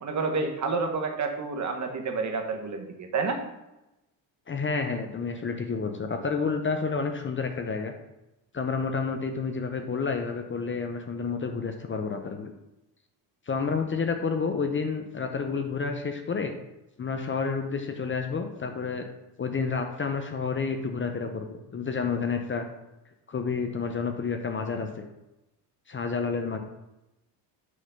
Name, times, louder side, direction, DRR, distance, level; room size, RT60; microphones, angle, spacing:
voice 1, 0.0-3.4, right 4 dB, 40° right, 4 dB, 1.1 m, -29 dB
voice 2, 4.5-7.9 8.5-12.5 13.5-16.5 17.0-19.0 19.4-22.6 23.3-25.1 25.9-26.6, left 5 dB, 30° left, 6 dB, 0.6 m, -30 dB
6.2 x 3.7 x 5.6 m, 0.94 s
cardioid pair, 115°, 42 cm